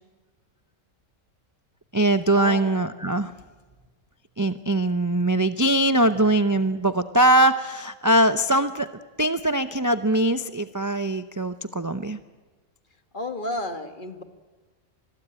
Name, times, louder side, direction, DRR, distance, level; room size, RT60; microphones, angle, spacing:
voice 1, 1.9-3.3 4.4-8.9 9.2-12.2, right 1 dB, 20° right, 10 dB, 0.6 m, -22 dB
voice 2, 13.1-14.2, left 1 dB, 40° left, 8 dB, 1.8 m, -31 dB
26.0 x 21.0 x 9.0 m, 1.3 s
omnidirectional pair, 1.4 m